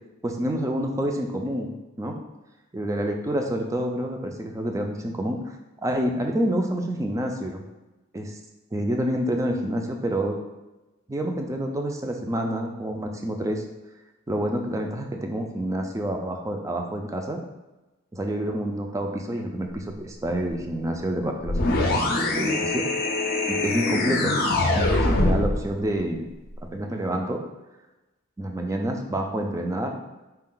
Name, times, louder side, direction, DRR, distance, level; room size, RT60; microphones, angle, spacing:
voice 1, 0.2-1.7 2.0-2.2 2.7-5.6 5.8-7.6 8.1-8.4 8.7-10.4 11.1-13.6 14.3-17.4 18.1-22.0 22.3-22.8 23.5-24.3 24.7-26.2 26.7-27.4 28.4-29.9, right 1 dB, 15° right, 3 dB, 0.4 m, -28 dB
sound 1, 21.5-25.6, left 2 dB, 45° left, 0.5 m, -23 dB
4.3 x 2.3 x 3.8 m, 1.1 s
head